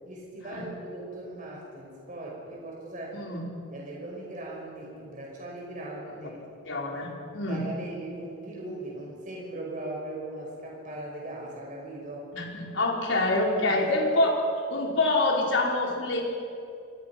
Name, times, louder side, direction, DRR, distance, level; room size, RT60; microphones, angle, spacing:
voice 1, 0.0-3.3 3.7-6.4 7.5-12.3 13.7-13.8, right 1 dB, 45° right, -2 dB, 5.5 m, -39 dB
voice 2, 6.6-7.6 12.3-14.4 14.7-16.2, left 2 dB, 90° left, -1 dB, 4.8 m, -26 dB
27.0 x 22.0 x 6.0 m, 2.5 s
head